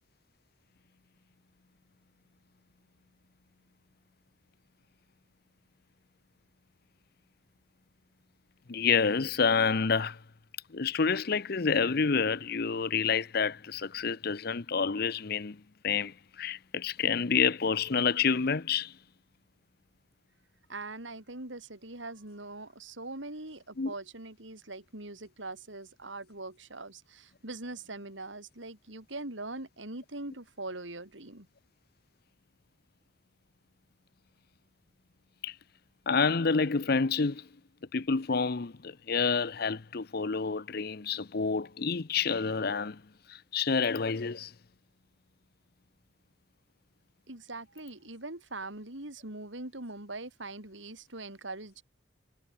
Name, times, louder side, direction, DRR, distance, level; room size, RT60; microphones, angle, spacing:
voice 1, 8.7-10.2 10.7-18.9 23.8-23.9 35.4-35.5 36.1-37.5 37.9-43.0 43.3-44.5, left 5 dB, 55° left, 0.7 m, -28 dB
voice 2, 20.7-31.5 47.3-51.8, right 2 dB, 85° right, 4.7 m, -42 dB
head